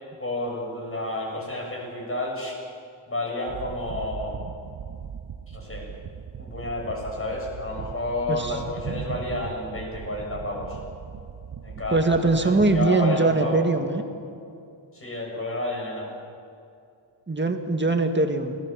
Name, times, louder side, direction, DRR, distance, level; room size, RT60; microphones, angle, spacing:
voice 1, 0.2-2.6 3.1-4.4 5.5-5.9 6.4-10.8 11.6-13.6 14.9-16.1, left 2 dB, 25° left, -1 dB, 7.6 m, -30 dB
sound 1, 3.5-12.9, right 7 dB, 45° right, 1.0 m, -38 dB
voice 2, 8.3-8.6 11.9-14.0 17.3-18.6, right 3 dB, 25° right, 6 dB, 1.9 m, -22 dB
26.5 x 20.0 x 7.6 m, 2.5 s
wide cardioid pair, 135°, 48 cm